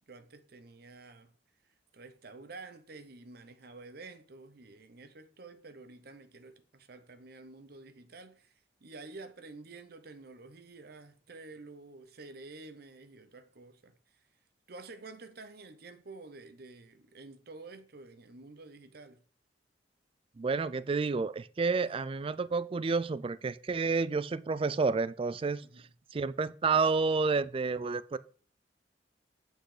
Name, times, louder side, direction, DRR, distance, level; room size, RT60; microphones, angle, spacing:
voice 1, 0.1-1.3 1.9-8.5 8.8-13.9 14.7-19.2 21.8-22.0 25.6-25.8 26.7-26.9, right 3 dB, 60° right, 0.8 m, -50 dB
voice 2, 20.4-25.6 26.1-28.2, right 4 dB, 30° right, 0.4 m, -30 dB
8.1 x 6.5 x 4.9 m
head